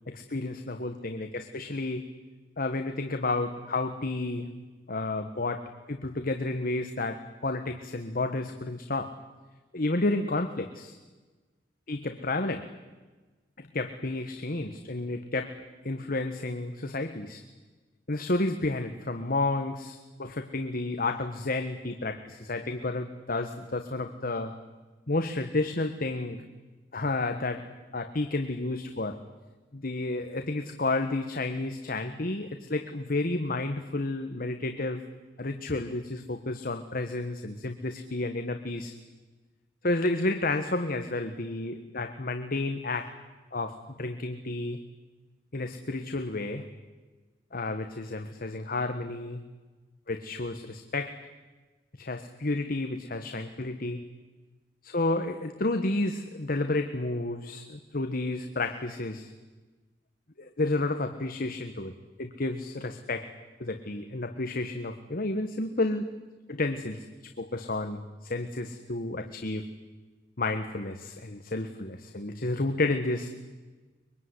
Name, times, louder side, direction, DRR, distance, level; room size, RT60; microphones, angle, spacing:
voice 1, 0.1-2.1 2.6-4.5 4.9-9.2 9.7-10.9 11.9-12.7 13.6-17.4 18.1-24.6 25.1-26.5 26.9-29.2 29.7-35.0 35.4-38.9 39.8-43.2 43.5-44.8 45.5-46.7 47.5-49.4 50.1-51.3 52.0-54.1 54.8-59.3 60.4-63.3 63.6-66.2 66.5-69.7 70.4-73.3, left 2 dB, 55° left, 7 dB, 1.5 m, -31 dB
23.5 x 23.0 x 9.8 m, 1.3 s
head